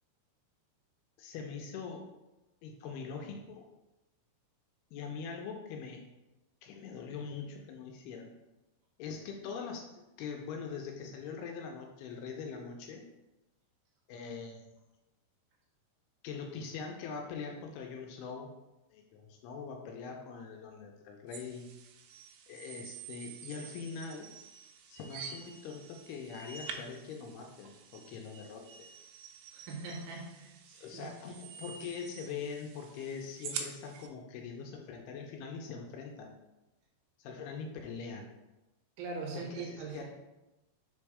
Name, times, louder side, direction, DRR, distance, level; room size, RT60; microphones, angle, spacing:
voice 1, 1.2-2.1 2.6-3.7 4.9-6.0 6.6-8.3 9.0-9.8 10.2-13.0 14.1-14.6 16.2-18.5 18.9-21.7 22.5-24.3 24.9-28.9 30.8-36.3 37.2-38.3 39.3-40.0, left 5 dB, 80° left, 2 dB, 2.5 m, -42 dB
sound 1, 21.3-34.1, right 6 dB, 90° right, 2.0 m, -47 dB
voice 2, 29.5-31.1 39.0-40.0, right 4 dB, 75° right, 0 dB, 2.4 m, -41 dB
5.3 x 4.4 x 4.8 m, 1.0 s
omnidirectional pair, 4.9 m